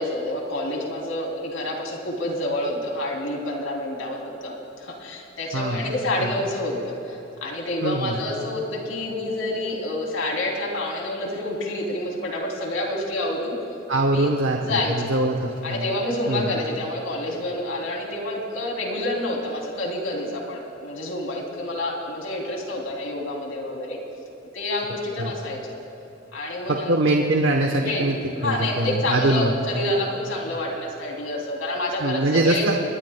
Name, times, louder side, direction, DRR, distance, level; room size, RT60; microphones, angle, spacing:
voice 1, 0.0-13.6 14.1-14.3 14.6-14.9 15.6-24.0 24.5-25.8 26.3-27.0 27.8-28.1 28.4-32.7, left 1 dB, 80° left, 0 dB, 3.0 m, -28 dB
voice 2, 5.5-5.9 6.2-6.3 7.8-8.2 13.9-16.0 16.3-16.5 25.2-25.3 26.7-28.2 28.4-29.5 32.0-32.8, right 2 dB, 65° right, 1 dB, 1.0 m, -23 dB
28.5 x 20.5 x 2.2 m, 3.0 s
head